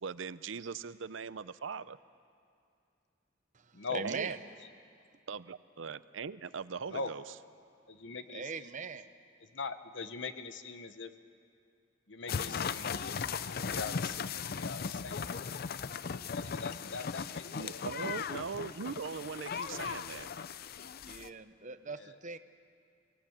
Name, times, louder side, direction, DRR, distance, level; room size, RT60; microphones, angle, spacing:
voice 1, 0.0-2.0 4.0-4.4 5.3-7.2 17.6-20.3, right 5 dB, 90° right, 16 dB, 0.6 m, -40 dB
voice 2, 3.9-4.4 8.3-9.1 21.0-22.4, right 4 dB, 40° right, 11 dB, 0.8 m, -40 dB
voice 3, 7.9-8.7 9.4-11.1 12.1-13.1 13.7-15.3 16.0-17.9 21.9-22.2, left 4 dB, 70° left, 10 dB, 1.0 m, -42 dB
sound 1, 12.3-21.3, left 6 dB, 55° left, 0.5 m, -37 dB
23.5 x 17.5 x 8.9 m, 2.4 s
head